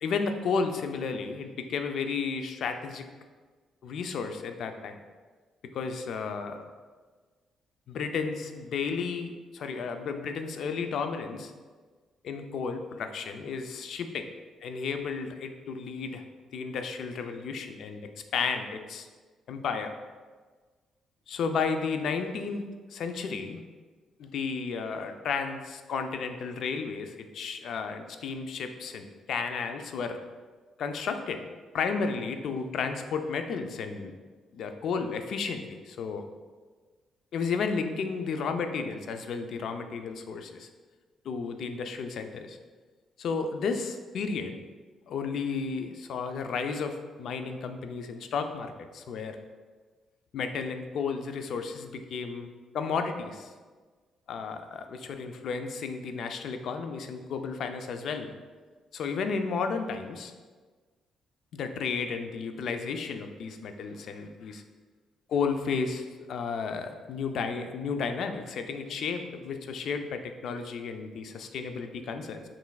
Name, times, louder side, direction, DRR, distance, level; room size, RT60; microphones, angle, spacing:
voice 1, 0.0-3.1 3.8-5.0 5.7-6.7 7.9-11.5 12.2-14.3 14.6-16.2 16.5-19.1 19.5-19.9 21.3-23.6 24.2-30.2 30.8-31.4 31.7-34.1 34.5-36.2 37.3-40.7 41.2-42.6 43.2-44.6 45.1-49.4 50.3-53.5 54.3-58.3 58.9-60.3 61.5-64.6 65.3-72.4, left 5 dB, 70° left, 7 dB, 0.4 m, -33 dB
5.7 x 3.1 x 2.3 m, 1.4 s
cardioid pair, 90°, 0 cm